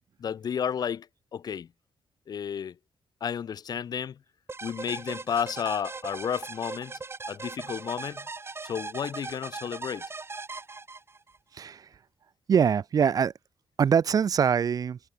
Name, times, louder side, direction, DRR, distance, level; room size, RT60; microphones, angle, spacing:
voice 1, 0.2-1.1 1.3-1.7 2.3-2.7 3.2-4.2 4.6-6.9 7.3-8.3 8.6-10.0, left 8 dB, 60° left, 0.7 m, -32 dB
sound 1, 4.5-11.4, right 3 dB, 35° right, 2.0 m, -39 dB
voice 2, 11.5-11.9 12.5-13.3 13.8-15.0, right 7 dB, 55° right, 0.4 m, -23 dB
cardioid pair, 60°, 8 cm